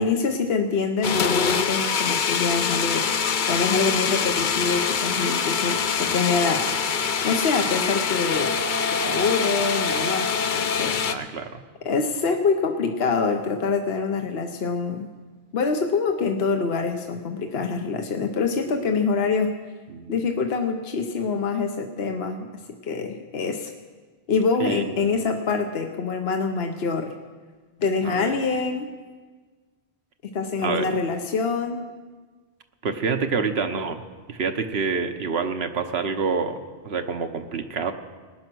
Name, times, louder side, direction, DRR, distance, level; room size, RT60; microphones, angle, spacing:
voice 1, 0.0-3.1 3.5-6.7 7.2-8.6 8.9-11.0 11.8-15.1 15.5-19.5 20.1-22.5 22.8-23.7 24.3-27.1 27.8-28.9 30.3-31.8, left 4 dB, 70° left, 5 dB, 1.1 m, -25 dB
sound 1, 1.0-11.1, left 6 dB, 55° left, 0.8 m, -24 dB
voice 2, 11.0-11.6 19.9-20.1 24.6-25.0 28.0-28.3 30.6-30.9 32.8-34.0 34.3-36.6 36.8-37.9, right 5 dB, 75° right, 7 dB, 1.2 m, -27 dB
19.0 x 10.0 x 6.2 m, 1.4 s
omnidirectional pair, 1.1 m